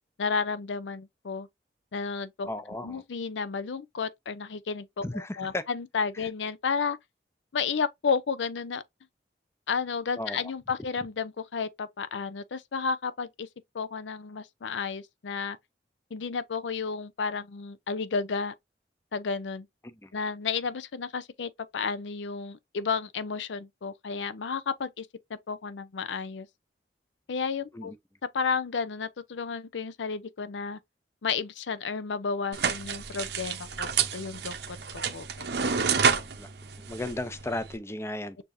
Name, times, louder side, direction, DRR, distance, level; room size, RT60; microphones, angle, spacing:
voice 1, 0.2-1.5 1.9-2.5 2.8-7.0 7.5-8.8 9.7-13.5 13.7-15.6 16.1-18.5 19.1-19.7 20.1-26.5 27.3-27.9 28.3-30.8 31.2-35.5, left 5 dB, 90° left, 0.5 m, -32 dB
voice 2, 2.5-3.0 5.0-5.6 10.2-10.4 19.8-20.1 27.7-28.0 36.3-36.5 36.8-38.4, left 1 dB, 15° left, 0.4 m, -35 dB
sound 1, 32.5-37.8, right 6 dB, 65° right, 0.7 m, -29 dB
6.7 x 2.7 x 2.6 m
head